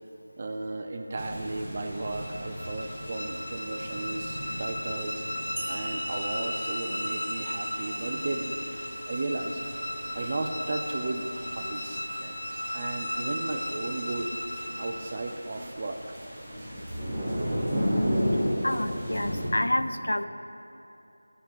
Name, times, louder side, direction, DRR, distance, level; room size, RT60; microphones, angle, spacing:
voice 1, 0.4-8.6 9.1-9.6 10.1-14.4 14.8-16.2 16.6-16.8, right 2 dB, 30° right, 4 dB, 0.4 m, -35 dB
sound 1, 1.2-19.5, equal, 10° right, 0.9 m, -35 dB
sound 2, 1.9-15.3, left 1 dB, 55° left, 0.8 m, -36 dB
sound 3, 5.6-8.9, equal, 65° right, 1.1 m, -40 dB
voice 2, 18.6-20.3, left 1 dB, 85° left, 10 dB, 0.3 m, -28 dB
11.0 x 5.1 x 2.3 m, 2.9 s
figure-of-eight pair, 170°, 0 cm